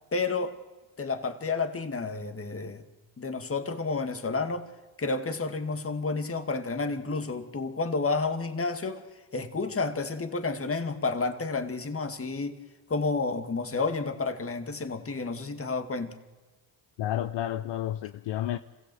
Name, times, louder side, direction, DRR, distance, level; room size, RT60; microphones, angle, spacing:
voice 1, 0.1-0.5 1.0-2.8 3.2-4.7 5.0-9.0 9.3-12.6 12.9-16.1, left 3 dB, 30° left, 2.1 m, -30 dB
voice 2, 17.0-18.6, left 12 dB, 65° left, 0.8 m, -31 dB
27.0 x 16.0 x 7.8 m
supercardioid pair, 70°, 48 cm